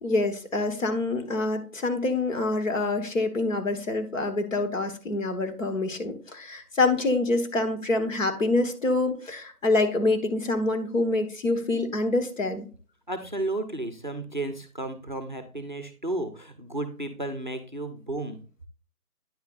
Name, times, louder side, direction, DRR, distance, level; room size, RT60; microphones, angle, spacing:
voice 1, 0.0-12.7, left 2 dB, 55° left, 6 dB, 1.5 m, -26 dB
voice 2, 13.1-18.4, right 2 dB, 30° right, 8 dB, 0.6 m, -33 dB
9.5 x 6.9 x 2.5 m, 0.38 s
figure-of-eight pair, 165°, 46 cm